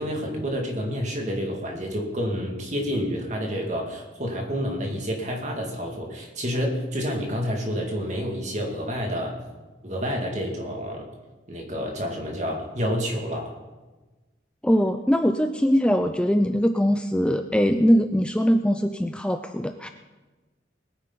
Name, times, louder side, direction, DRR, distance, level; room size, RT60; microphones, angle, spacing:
voice 1, 0.0-9.4 9.8-11.0 11.5-13.5, equal, 40° right, 0 dB, 2.5 m, -29 dB
voice 2, 14.6-19.9, equal, 5° left, 7 dB, 0.4 m, -21 dB
20.5 x 9.6 x 4.1 m, 1.2 s
head